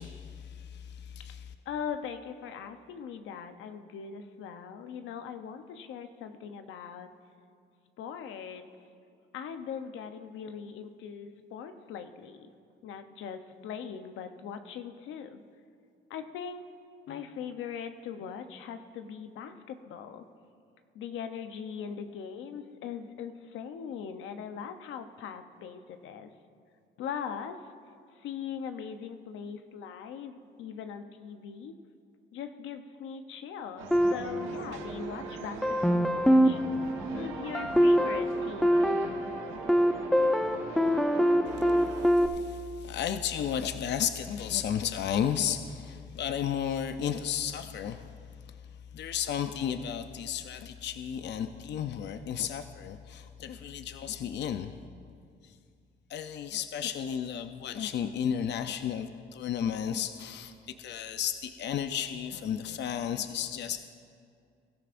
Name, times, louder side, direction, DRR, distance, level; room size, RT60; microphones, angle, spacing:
voice 1, 0.0-1.5 41.5-48.1 48.4-48.6 48.9-54.8 55.4-55.6 56.1-63.8, left 9 dB, 60° left, 9 dB, 0.6 m, -33 dB
voice 2, 1.7-7.1 8.0-8.7 9.3-12.5 12.8-15.4 16.1-16.6 17.1-20.2 20.9-26.3 27.0-27.5 28.2-31.7 32.3-36.6 37.1-38.8, left 7 dB, 90° left, 8 dB, 0.8 m, -40 dB
sound 1, 33.8-42.1, right 4 dB, 90° right, 1.3 m, -41 dB
sound 2, 33.9-35.2 35.6-42.3, equal, ahead, 0.7 m, -25 dB
22.0 x 13.5 x 2.6 m, 2.3 s
cardioid pair, 90°, 20 cm